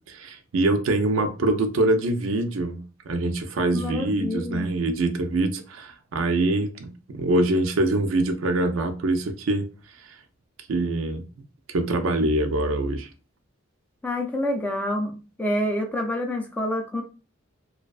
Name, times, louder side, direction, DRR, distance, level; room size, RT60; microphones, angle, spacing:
voice 1, 0.1-9.6 10.7-11.2 11.7-13.1, right 2 dB, 80° right, 7 dB, 0.4 m, -24 dB
voice 2, 3.7-4.7 14.0-17.0, left 1 dB, 10° left, 2 dB, 0.3 m, -27 dB
2.4 x 2.2 x 2.3 m, 0.33 s
head